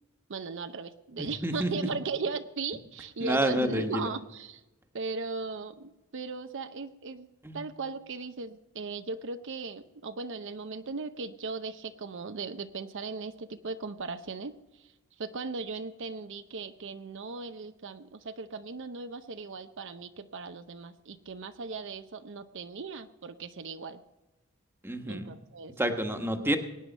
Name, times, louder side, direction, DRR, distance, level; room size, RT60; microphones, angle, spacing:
voice 1, 0.3-4.6 4.9-7.3 7.5-24.0 25.1-25.8, right 4 dB, 60° right, 9 dB, 0.6 m, -37 dB
voice 2, 1.2-1.9 3.2-4.1 7.4-7.6 24.8-25.3 25.8-26.6, right 1 dB, 10° right, 6 dB, 1.3 m, -29 dB
21.5 x 9.4 x 5.3 m, 1.1 s
head